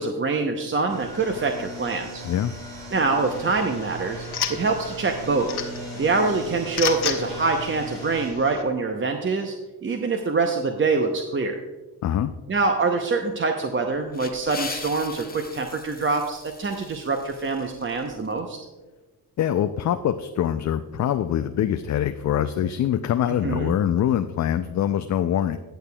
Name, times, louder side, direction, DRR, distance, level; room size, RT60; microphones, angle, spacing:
voice 1, 0.0-2.2 2.9-5.5 6.0-9.5 9.8-11.6 12.5-18.6 23.4-23.7, right 3 dB, 25° right, 4 dB, 0.8 m, -25 dB
sound 1, 0.9-8.3, right 1 dB, 80° right, 3.1 m, -38 dB
sound 2, 3.2-8.6, left 8 dB, 55° left, 1.2 m, -34 dB
voice 2, 12.0-12.3 19.4-25.6, left 10 dB, 40° left, 9 dB, 0.5 m, -24 dB
sound 3, 13.8-18.4, left 4 dB, 20° left, 0.9 m, -40 dB
19.5 x 6.7 x 2.3 m, 1.2 s
hypercardioid pair, 50°, 47 cm